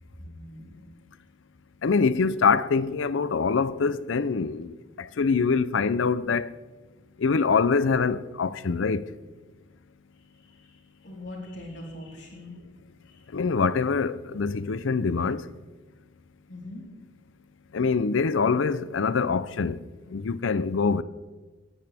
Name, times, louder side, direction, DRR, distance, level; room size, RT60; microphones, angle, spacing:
voice 1, 0.2-0.8 10.3-12.5 13.1-13.2 16.5-16.8, left 1 dB, 65° left, 4.0 m, -42 dB
voice 2, 1.8-6.5 7.2-9.0 13.3-15.5 17.7-19.8 20.1-21.0, left 5 dB, 85° left, 0.5 m, -24 dB
20.0 x 9.9 x 3.5 m
head